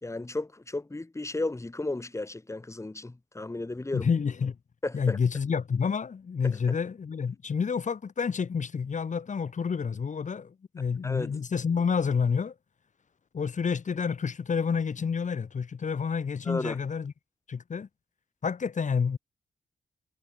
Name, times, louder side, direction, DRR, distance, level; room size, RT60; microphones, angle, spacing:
voice 1, 0.0-4.1 4.8-5.2 6.4-6.6 11.0-11.4 16.4-16.8, left 2 dB, 20° left, 3.0 m, -34 dB
voice 2, 3.9-4.6 4.9-12.5 13.3-17.1 17.5-17.9 18.4-19.2, left 6 dB, 55° left, 3.0 m, -29 dB
cardioid pair, 75°, 15 cm